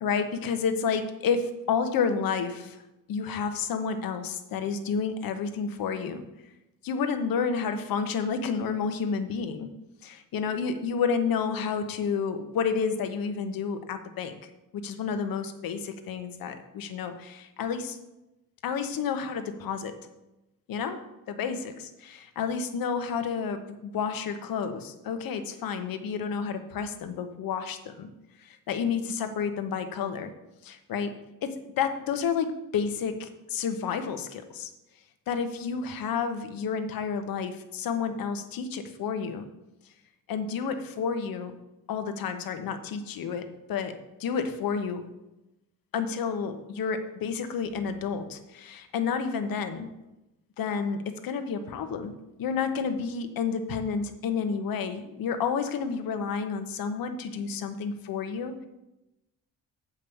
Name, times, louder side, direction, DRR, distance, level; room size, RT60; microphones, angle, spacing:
voice 1, 0.0-2.8 3.1-6.2 6.8-9.7 10.0-14.3 14.7-18.0 18.6-20.0 20.7-21.0 21.3-28.1 28.4-30.3 30.6-31.2 31.4-34.7 35.3-39.5 40.3-41.5 41.9-43.9 44.2-45.0 45.9-49.9 50.6-58.7, left 6 dB, 80° left, 8 dB, 1.0 m, -30 dB
8.2 x 5.3 x 7.0 m, 0.95 s
wide cardioid pair, 165°, 34 cm